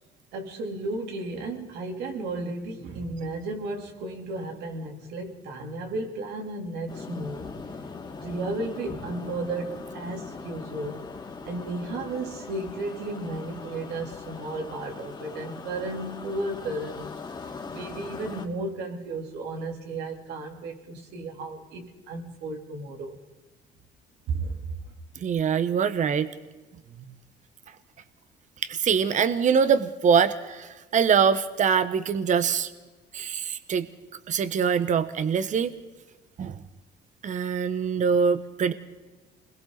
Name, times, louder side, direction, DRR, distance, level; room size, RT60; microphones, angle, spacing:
voice 1, 0.3-7.5 8.2-11.1 11.4-17.2 17.7-23.2 24.3-24.7, right 2 dB, 80° right, 3.6 m, -34 dB
sound 1, 6.9-18.5, left 4 dB, 25° left, 2.6 m, -40 dB
voice 2, 25.2-26.3 28.6-32.7 33.1-33.9 34.3-35.7 36.4-36.6 37.2-38.7, right 6 dB, 45° right, 1.3 m, -23 dB
29.0 x 21.5 x 4.1 m
cardioid pair, 110°, 17 cm